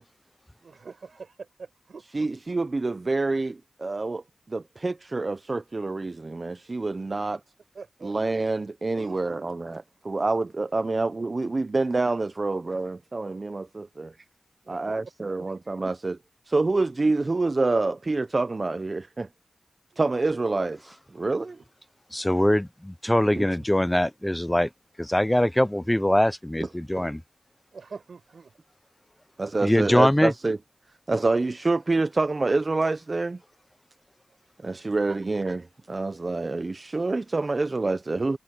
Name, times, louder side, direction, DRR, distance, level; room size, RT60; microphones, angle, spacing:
voice 1, 0.6-2.3 7.7-8.2 8.9-9.4 10.7-10.9 14.6-15.0 21.5-21.6 27.7-28.5 35.1-35.2, right 5 dB, 75° right, 7.7 m, -44 dB
voice 2, 2.1-7.4 8.0-14.1 14.7-16.2 16.5-19.3 20.0-21.6 23.4-23.5 26.6-27.1 29.4-30.6 31.1-33.4 34.6-35.6 35.9-38.4, right 3 dB, 45° right, 0.8 m, -27 dB
voice 3, 22.1-24.7 25.0-27.2 29.6-30.3, left 1 dB, 10° left, 0.5 m, -22 dB
cardioid pair, 45°, 0 cm